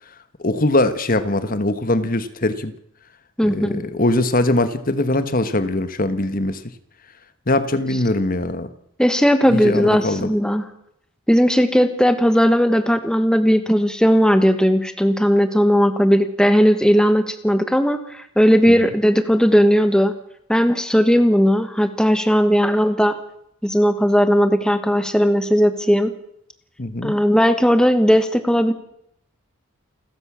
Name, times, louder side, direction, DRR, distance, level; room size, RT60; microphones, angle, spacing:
voice 1, 0.4-2.7 3.4-6.6 7.5-8.7 9.5-10.3 18.7-18.9 26.8-27.2, left 2 dB, 40° left, 1.3 m, -21 dB
voice 2, 3.4-3.8 9.0-10.6 11.3-20.1 20.5-23.1 23.6-26.1 27.0-28.7, equal, 5° left, 1.2 m, -17 dB
29.0 x 13.5 x 7.4 m
head